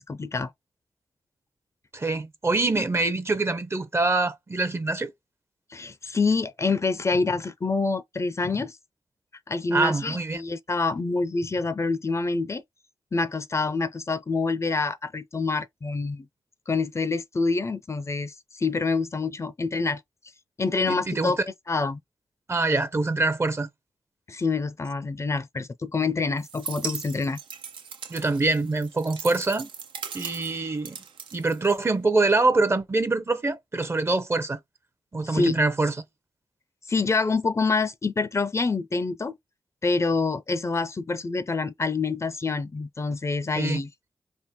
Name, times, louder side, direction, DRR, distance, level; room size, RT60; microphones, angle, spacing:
voice 1, 0.1-0.5 5.7-8.8 9.5-12.6 13.1-16.3 16.7-20.0 20.6-21.4 21.7-22.0 24.3-27.4 35.2-35.6 36.9-39.4 39.8-43.9, left 4 dB, 35° left, 0.5 m, -26 dB
voice 2, 1.9-5.1 9.7-10.4 20.9-21.4 22.5-23.7 28.1-29.7 30.1-31.0 31.3-34.6 35.1-35.9 43.6-43.8, right 3 dB, 30° right, 0.7 m, -24 dB
sound 1, 26.4-32.1, right 6 dB, 85° right, 0.6 m, -39 dB
3.6 x 2.1 x 4.1 m
cardioid pair, 55°, 8 cm